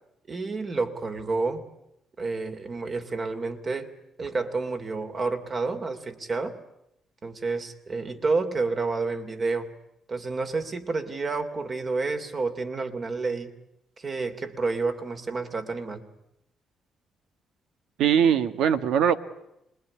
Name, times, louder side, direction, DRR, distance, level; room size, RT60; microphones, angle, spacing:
voice 1, 0.3-1.6 2.2-3.9 4.2-6.5 7.2-9.7 10.1-13.5 14.0-16.0, right 3 dB, 40° right, 7 dB, 2.9 m, -29 dB
voice 2, 18.0-19.1, right 8 dB, 80° right, 11 dB, 1.4 m, -21 dB
26.5 x 21.5 x 9.8 m, 0.85 s
cardioid pair, 90°, 0 cm